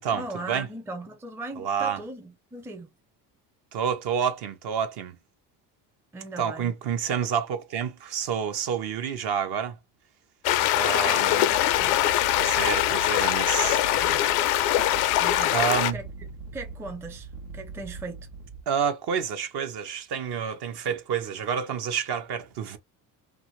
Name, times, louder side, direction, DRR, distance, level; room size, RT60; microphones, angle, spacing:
voice 1, 0.1-2.9 6.1-6.7 11.1-12.0 13.9-14.3 15.2-15.5 15.9-18.3, right 2 dB, 5° right, 0.4 m, -39 dB
voice 2, 1.6-2.0 3.7-5.2 6.4-9.8 10.7-11.5 12.4-13.8 14.2-14.3 15.5-16.0 18.7-22.8, right 7 dB, 55° right, 0.8 m, -28 dB
sound 1, 10.4-15.9, left 13 dB, 85° left, 0.5 m, -23 dB
sound 2, 11.5-18.6, right 4 dB, 80° right, 0.9 m, -42 dB
2.5 x 2.5 x 3.0 m
hypercardioid pair, 75°, 47 cm